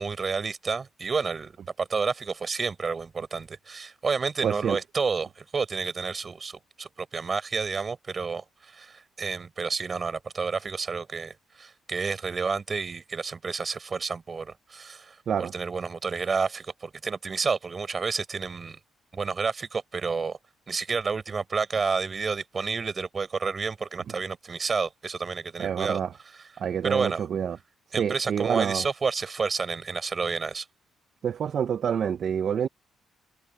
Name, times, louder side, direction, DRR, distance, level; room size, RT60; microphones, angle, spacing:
voice 1, 0.0-18.8 19.1-20.4 20.7-26.5 26.8-27.3 27.9-30.7, right 5 dB, 35° right, 4.4 m, -30 dB
voice 2, 4.4-4.8 15.3-15.5 25.6-26.1 26.6-27.6 28.0-28.8 31.2-32.7, right 8 dB, 55° right, 0.5 m, -27 dB
cardioid pair, 90°, 0 cm